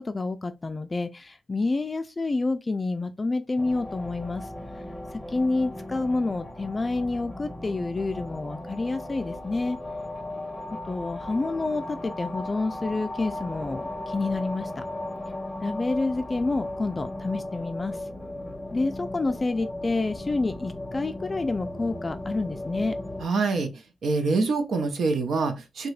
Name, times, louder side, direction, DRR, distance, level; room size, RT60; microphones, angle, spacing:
voice 1, 0.0-4.5 5.3-9.8 10.9-14.8 15.6-18.0 18.7-23.0, left 3 dB, 30° left, 0.3 m, -28 dB
sound 1, 3.6-23.2, left 1 dB, 5° left, 0.8 m, -36 dB
voice 2, 23.2-25.9, right 3 dB, 75° right, 0.7 m, -25 dB
3.5 x 2.2 x 3.2 m
cardioid pair, 80°, 0 cm